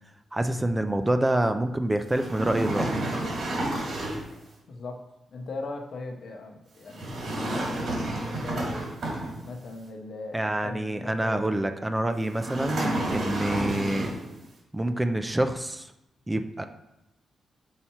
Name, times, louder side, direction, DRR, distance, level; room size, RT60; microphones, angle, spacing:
voice 1, 0.3-3.0 10.3-14.1 14.7-15.9 16.3-16.6, right 1 dB, 10° right, 7 dB, 0.4 m, -27 dB
sound 1, 2.1-4.3 6.9-9.6 12.3-14.3, right 1 dB, 65° right, 2.3 m, -30 dB
voice 2, 4.7-8.9 9.4-11.6, left 3 dB, 60° left, 3 dB, 0.8 m, -39 dB
5.6 x 4.3 x 4.4 m, 0.90 s
wide cardioid pair, 130°, 0 cm